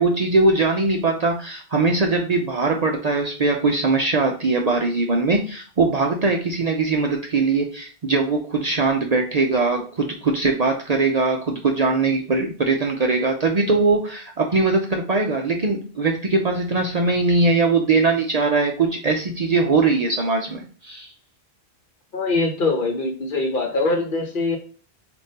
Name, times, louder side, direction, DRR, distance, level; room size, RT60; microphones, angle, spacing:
voice 1, 0.0-21.1, right 3 dB, 45° right, 2 dB, 0.6 m, -21 dB
voice 2, 22.1-24.6, left 3 dB, 55° left, 2 dB, 1.1 m, -23 dB
6.6 x 2.6 x 2.8 m, 0.41 s
omnidirectional pair, 1.1 m